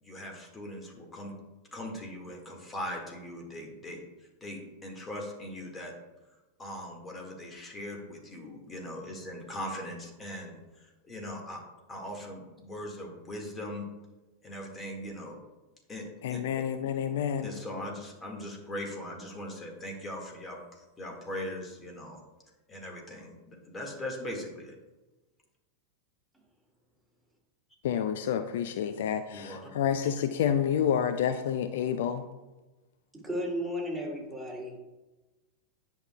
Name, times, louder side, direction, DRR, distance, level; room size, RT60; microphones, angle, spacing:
voice 1, 0.0-1.3 1.7-5.9 6.6-11.6 11.9-13.9 14.4-15.4 15.9-16.6 17.4-22.2 22.7-24.8 29.3-29.6, left 1 dB, 20° left, 1 dB, 1.8 m, -40 dB
voice 2, 16.2-17.5 27.8-32.2, left 8 dB, 60° left, 9 dB, 0.4 m, -29 dB
voice 3, 33.2-34.8, equal, 5° right, -4 dB, 2.5 m, -34 dB
10.0 x 6.0 x 2.3 m, 1.1 s
figure-of-eight pair, 90°, 0 cm